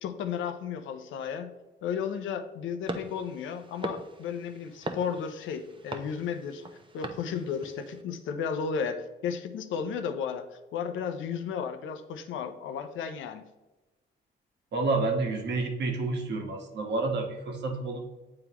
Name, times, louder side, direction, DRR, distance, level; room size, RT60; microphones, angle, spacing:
voice 1, 0.0-1.5 1.8-6.6 6.9-13.4, left 7 dB, 80° left, 9 dB, 0.7 m, -34 dB
sound 1, 2.9-8.0, right 2 dB, 25° right, 0.8 m, -41 dB
voice 2, 14.7-18.1, right 3 dB, 60° right, 2 dB, 1.4 m, -29 dB
8.7 x 3.8 x 2.9 m, 1.1 s
cardioid pair, 90°, 20 cm